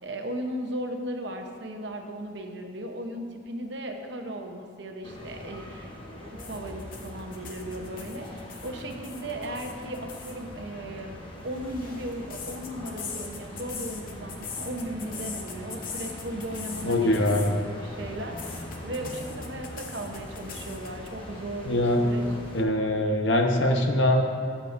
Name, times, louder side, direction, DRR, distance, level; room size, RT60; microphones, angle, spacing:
voice 1, 0.0-11.2 11.4-22.2, right 1 dB, 60° right, 3 dB, 0.9 m, -36 dB
sound 1, 5.0-22.6, left 1 dB, 25° left, 1.0 m, -41 dB
sound 2, 6.4-10.4 11.4-17.6 17.9-21.1, left 6 dB, 45° left, 0.9 m, -41 dB
voice 2, 16.8-17.5 21.7-22.0 22.5-24.2, left 1 dB, 65° left, 2 dB, 1.0 m, -23 dB
17.5 x 7.4 x 2.6 m, 2.3 s
head